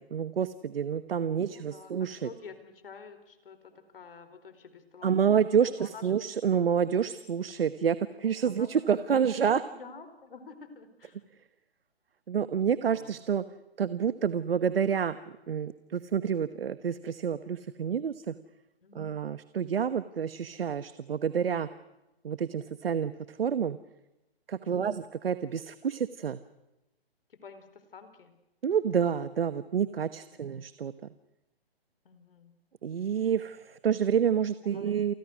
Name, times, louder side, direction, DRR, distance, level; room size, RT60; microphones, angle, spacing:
voice 1, 0.1-2.3 5.0-9.6 12.3-13.4 13.8-15.2 15.5-18.3 18.9-21.7 22.2-23.8 24.5-26.4 28.6-30.9 32.8-35.1, right 7 dB, 65° right, 13 dB, 1.2 m, -28 dB
voice 2, 1.3-5.2 5.6-6.2 8.4-11.2 12.9-13.1 18.8-19.1 24.6-25.0 27.3-28.3 30.3-30.6 32.0-32.5 34.6-34.9, left 5 dB, 60° left, 10 dB, 4.6 m, -49 dB
29.0 x 24.5 x 6.3 m, 0.96 s
hypercardioid pair, 165°, 31 cm